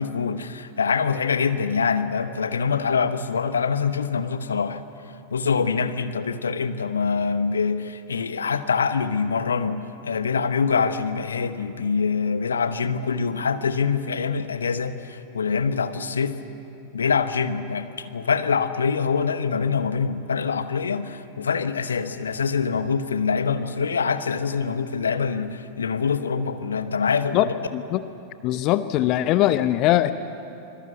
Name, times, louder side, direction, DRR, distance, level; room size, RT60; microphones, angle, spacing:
voice 1, 0.0-4.8 5.3-16.4 16.9-27.5, left 5 dB, 70° left, 11 dB, 1.1 m, -24 dB
voice 2, 28.4-30.1, left 14 dB, 40° left, 13 dB, 0.7 m, -21 dB
24.5 x 22.0 x 8.1 m, 2.8 s
figure-of-eight pair, 90°, 0 cm